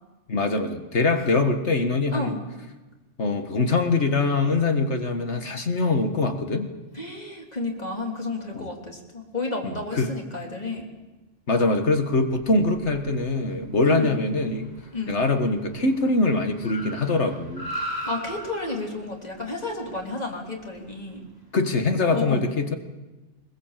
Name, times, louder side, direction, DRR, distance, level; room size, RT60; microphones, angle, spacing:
voice 1, 0.3-2.4 3.2-6.7 8.5-8.7 9.6-10.1 11.5-14.7 15.1-17.7 21.5-22.8, left 3 dB, 70° left, 6 dB, 1.9 m, -23 dB
voice 2, 6.9-10.9 13.9-14.2 14.9-15.2 18.0-21.2 22.1-22.4, left 2 dB, 35° left, 0 dB, 3.4 m, -31 dB
Car, 11.9-21.3, equal, 15° left, 5.3 m, -40 dB
21.5 x 21.0 x 7.5 m, 1.1 s
omnidirectional pair, 1.2 m